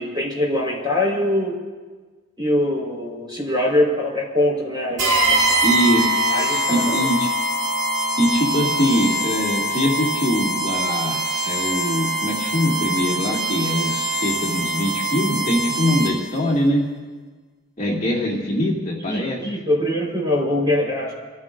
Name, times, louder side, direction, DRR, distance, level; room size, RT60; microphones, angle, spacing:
voice 1, 0.0-1.6 2.4-5.6 6.3-7.1 17.9-18.0 19.1-21.1, left 1 dB, 20° right, -3 dB, 4.0 m, -23 dB
sound 1, 5.0-16.4, right 1 dB, 65° right, 5.7 m, -23 dB
voice 2, 5.6-6.2 6.5-7.3 8.2-16.8 17.8-19.4, left 1 dB, 35° left, -4 dB, 2.1 m, -22 dB
28.5 x 15.0 x 2.5 m, 1.4 s
head